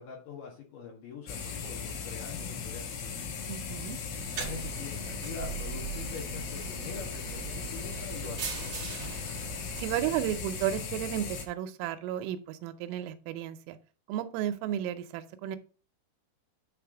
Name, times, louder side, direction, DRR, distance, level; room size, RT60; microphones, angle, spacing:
voice 1, 0.0-3.4 4.1-8.9, left 6 dB, 65° left, 0 dB, 2.3 m, -44 dB
sound 1, 1.3-11.5, left 6 dB, 85° left, 4.0 m, -38 dB
voice 2, 3.5-4.0 9.8-13.8 14.1-15.6, right 11 dB, 90° right, 9 dB, 3.3 m, -33 dB
sound 2, 4.1-10.5, right 7 dB, 45° right, 2.3 m, -41 dB
9.8 x 3.4 x 4.9 m, 0.38 s
omnidirectional pair, 5.6 m